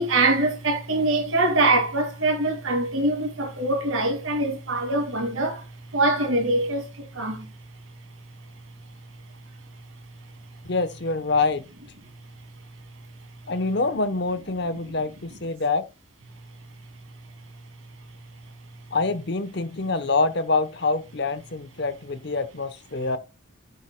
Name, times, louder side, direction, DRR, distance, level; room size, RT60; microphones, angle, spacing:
voice 1, 0.0-5.7 5.9-7.5, right 2 dB, 75° right, 2.3 m, -23 dB
voice 2, 10.7-11.6 13.5-15.9 18.9-23.2, left 3 dB, 55° left, 0.9 m, -25 dB
10.5 x 7.9 x 2.2 m
head